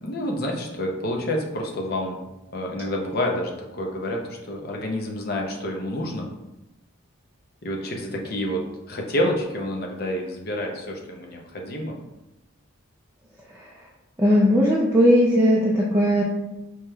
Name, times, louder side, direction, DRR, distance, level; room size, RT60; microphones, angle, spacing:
voice 1, 0.0-2.2 2.5-6.3 7.6-12.0, left 1 dB, 45° left, 1 dB, 0.6 m, -28 dB
voice 2, 14.2-16.2, equal, 10° right, -6 dB, 0.3 m, -18 dB
4.7 x 2.9 x 2.3 m, 0.96 s
head